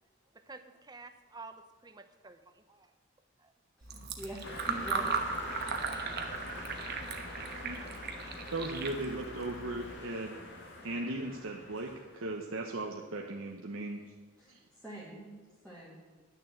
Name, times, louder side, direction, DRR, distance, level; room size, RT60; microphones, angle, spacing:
voice 1, 0.3-2.9 3.4-3.5, right 3 dB, 20° right, 8 dB, 0.7 m, -51 dB
voice 2, 3.8-5.5 14.4-16.2, right 1 dB, 5° left, -7 dB, 1.9 m, -46 dB
Fill (with liquid), 3.8-10.0, right 5 dB, 55° right, 1.1 m, -37 dB
sound 1, 4.4-12.3, left 2 dB, 60° left, 2.1 m, -45 dB
voice 3, 7.6-7.9 8.5-10.5 10.8-14.0 14.5-14.6, right 2 dB, 80° right, 1 dB, 0.9 m, -37 dB
11.0 x 6.6 x 7.9 m, 1.4 s
head